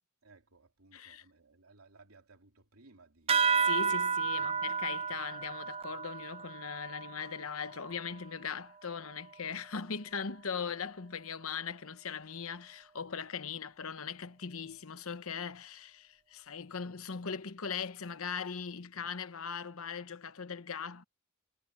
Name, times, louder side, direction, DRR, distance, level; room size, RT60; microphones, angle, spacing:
voice 1, 0.2-3.4 3.8-3.9 4.2-4.5, right 3 dB, 80° right, 3.1 m, -60 dB
voice 2, 0.9-1.2 3.3-21.0, left 6 dB, 70° left, 1.0 m, -40 dB
sound 1, 3.3-8.2, right 6 dB, 25° right, 0.4 m, -32 dB
head